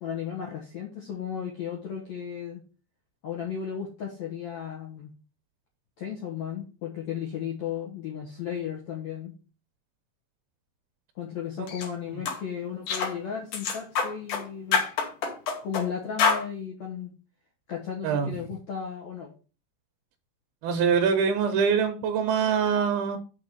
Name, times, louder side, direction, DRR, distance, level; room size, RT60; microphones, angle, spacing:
voice 1, 0.0-2.6 3.2-5.1 6.0-9.3 11.1-14.8 15.6-17.1 17.7-19.3, left 8 dB, 85° left, -2 dB, 1.5 m, -35 dB
sound 1, 11.7-11.9 12.3-12.4 12.9-13.1 13.5-14.4 14.7-15.9 16.2-16.4, left 5 dB, 65° left, 2.1 m, -26 dB
voice 2, 20.6-23.2, right 6 dB, 80° right, 6 dB, 2.2 m, -24 dB
6.3 x 4.5 x 6.6 m, 0.36 s
omnidirectional pair, 5.4 m